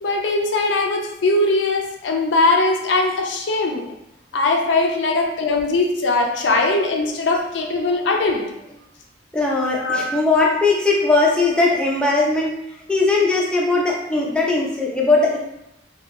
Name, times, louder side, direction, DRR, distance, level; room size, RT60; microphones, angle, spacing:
voice 1, 0.0-3.9 4.3-8.5 9.8-10.1, left 2 dB, 70° left, 2 dB, 0.4 m, -20 dB
voice 2, 9.3-12.5 12.9-15.4, left 3 dB, 5° left, -3 dB, 0.4 m, -19 dB
2.9 x 2.5 x 2.5 m, 0.87 s
head